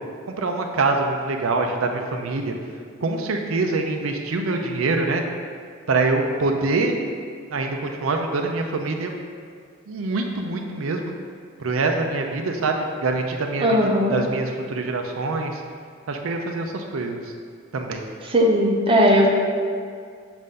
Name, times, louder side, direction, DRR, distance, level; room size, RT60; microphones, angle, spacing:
voice 1, 0.4-2.5 3.0-5.2 5.9-7.0 7.5-9.1 9.9-11.1 11.6-15.6 16.1-17.2 17.7-18.0, right 3 dB, 80° right, 3 dB, 0.5 m, -24 dB
voice 2, 13.6-14.2 18.3-19.3, equal, 25° right, -1 dB, 0.7 m, -17 dB
7.5 x 2.6 x 5.2 m, 2.1 s
head